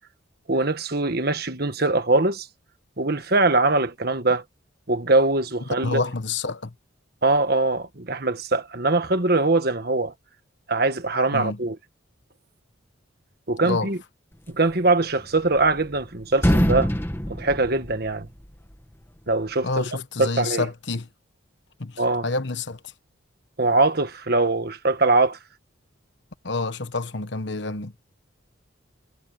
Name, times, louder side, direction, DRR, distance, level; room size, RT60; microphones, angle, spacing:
voice 1, 0.5-2.5 3.0-4.4 4.9-6.0 7.2-10.1 10.7-11.7 13.5-14.0 14.5-16.9 17.3-18.3 19.3-19.8 20.2-20.7 22.0-22.3 23.6-25.4, right 2 dB, 50° right, 1.5 m, -22 dB
voice 2, 5.8-6.7 11.3-11.6 13.6-13.9 19.6-21.1 21.8-22.9 26.4-28.0, left 3 dB, 60° left, 1.1 m, -28 dB
sound 1, 15.2-16.0 16.3-18.5, equal, 10° left, 1.4 m, -24 dB
head